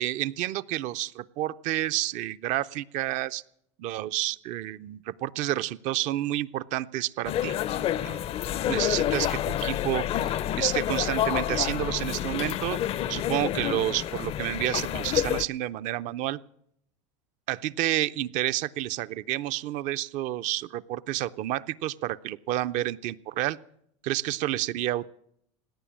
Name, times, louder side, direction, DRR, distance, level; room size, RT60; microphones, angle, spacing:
voice 1, 0.0-3.4 3.8-7.5 8.0-8.2 8.7-12.8 13.1-16.4 17.5-23.6 24.0-25.1, right 14 dB, 50° right, 15 dB, 0.6 m, -30 dB
sound 1, 7.3-15.5, left 11 dB, 40° left, 0.5 m, -28 dB
17.5 x 9.8 x 7.4 m, 0.72 s
supercardioid pair, 110°, 16 cm